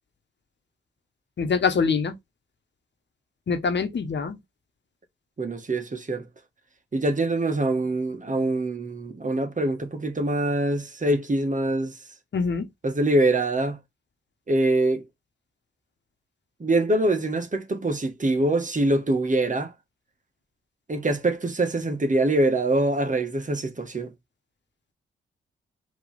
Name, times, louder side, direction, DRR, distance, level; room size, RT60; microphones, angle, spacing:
voice 1, 1.4-2.2 3.5-4.4 12.3-12.7, left 5 dB, 60° left, 1.2 m, -24 dB
voice 2, 5.4-6.3 6.9-12.0 12.8-13.8 14.5-15.0 16.6-19.7 20.9-24.1, right 2 dB, 40° right, 1.5 m, -24 dB
4.9 x 3.2 x 3.4 m
supercardioid pair, 40°, 21 cm